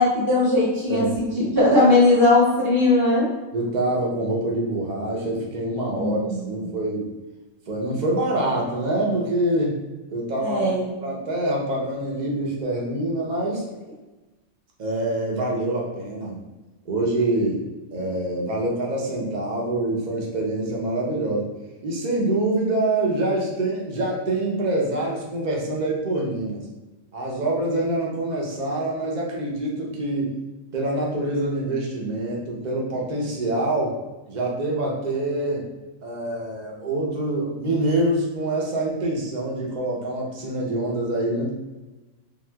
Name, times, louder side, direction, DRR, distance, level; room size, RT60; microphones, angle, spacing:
voice 1, 0.0-3.3 6.0-6.6 10.4-10.9, left 2 dB, 20° left, -7 dB, 0.6 m, -19 dB
voice 2, 3.5-7.1 7.7-9.8 10.1-10.7 11.0-13.6 14.8-16.4 16.8-17.6 17.9-21.5 21.8-26.6 27.1-30.4 30.7-34.0 34.3-35.7 36.0-41.5, right 1 dB, 50° right, -2 dB, 0.5 m, -25 dB
3.5 x 2.3 x 2.2 m, 1.1 s
omnidirectional pair, 1.5 m